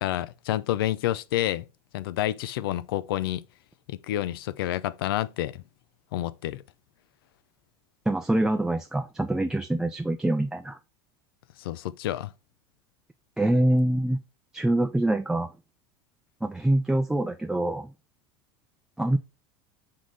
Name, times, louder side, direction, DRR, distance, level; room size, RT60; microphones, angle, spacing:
voice 1, 0.0-1.6 1.9-3.4 3.9-5.6 6.1-6.6 11.6-12.3, left 13 dB, 90° left, 0.6 m, -29 dB
voice 2, 8.1-10.8 13.4-14.2 14.5-15.5 16.4-17.9 19.0-19.2, right 1 dB, 5° right, 0.5 m, -25 dB
6.2 x 3.8 x 4.7 m
supercardioid pair, 120°, 12 cm